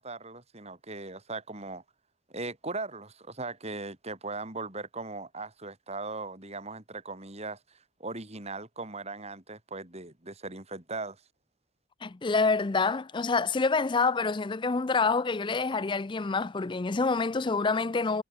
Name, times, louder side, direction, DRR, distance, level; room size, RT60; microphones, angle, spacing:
voice 1, 0.0-1.8 2.3-11.2, right 3 dB, 30° right, 3.6 m, -39 dB
voice 2, 12.0-18.2, left 4 dB, 20° left, 0.4 m, -27 dB
head